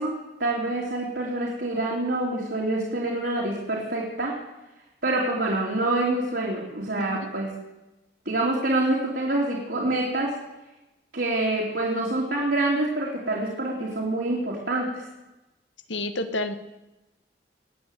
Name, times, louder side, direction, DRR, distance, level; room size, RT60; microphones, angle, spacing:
voice 1, 0.0-4.3 5.0-7.5 8.2-10.4 11.1-15.0, right 2 dB, 65° right, -3 dB, 3.1 m, -26 dB
voice 2, 15.9-16.5, left 2 dB, 85° left, 9 dB, 1.3 m, -29 dB
20.5 x 8.4 x 8.1 m, 1.0 s
head